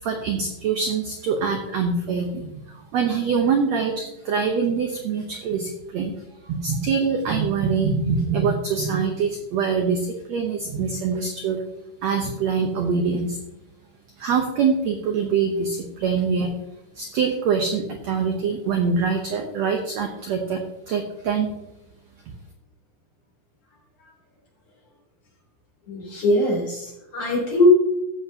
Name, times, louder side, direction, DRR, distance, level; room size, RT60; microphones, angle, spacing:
voice 1, 0.0-6.1 6.4-11.6 12.0-13.4 14.2-16.5 16.9-20.6 20.9-21.5, right 5 dB, 70° right, 3 dB, 1.6 m, -24 dB
voice 2, 25.9-27.7, equal, 40° left, -2 dB, 3.7 m, -21 dB
14.0 x 7.4 x 2.8 m, 0.88 s
omnidirectional pair, 4.1 m